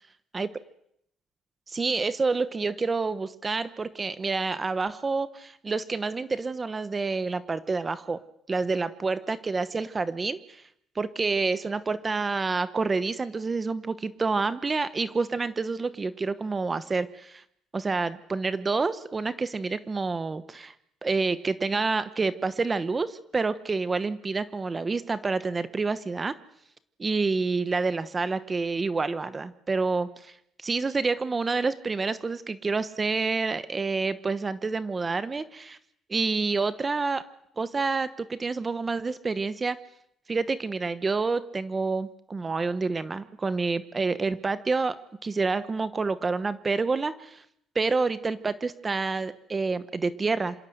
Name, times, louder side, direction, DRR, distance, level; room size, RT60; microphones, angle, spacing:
voice 1, 1.7-8.2 8.5-10.6 10.9-17.4 17.7-20.7 21.0-26.3 27.0-30.3 30.6-35.8 36.1-37.2 37.6-39.8 40.3-45.0 45.2-47.4 47.7-50.5, right 4 dB, 20° right, 13 dB, 1.1 m, -28 dB
27.0 x 27.0 x 8.0 m, 0.74 s
cardioid pair, 155°, 0 cm